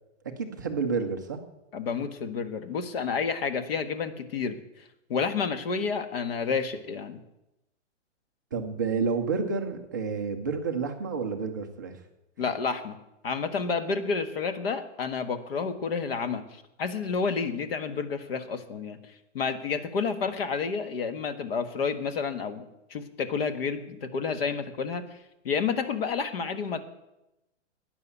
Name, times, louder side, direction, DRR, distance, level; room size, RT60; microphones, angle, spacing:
voice 1, 0.4-1.4 8.5-11.9, right 5 dB, 15° right, 2 dB, 0.4 m, -29 dB
voice 2, 1.7-4.6 5.1-7.2 12.4-13.0 13.2-19.0 19.3-25.1 25.4-26.8, left 5 dB, 50° left, 9 dB, 1.5 m, -30 dB
12.5 x 9.6 x 8.3 m, 0.93 s
hypercardioid pair, 170°, 36 cm